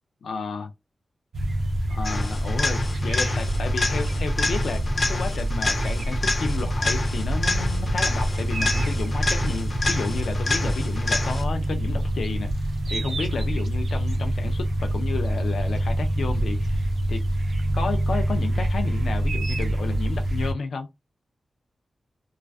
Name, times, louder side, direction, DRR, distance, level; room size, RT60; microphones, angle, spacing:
voice 1, 0.2-0.7 1.9-16.8 17.1-17.2 17.7-20.9, left 4 dB, 90° left, 0.4 m, -32 dB
sound 1, 1.3-20.5, right 1 dB, 75° right, 0.5 m, -26 dB
sound 2, 2.0-11.6 19.6-19.7, left 2 dB, 60° left, 0.7 m, -28 dB
2.3 x 2.3 x 2.3 m
cardioid pair, 60°, 0 cm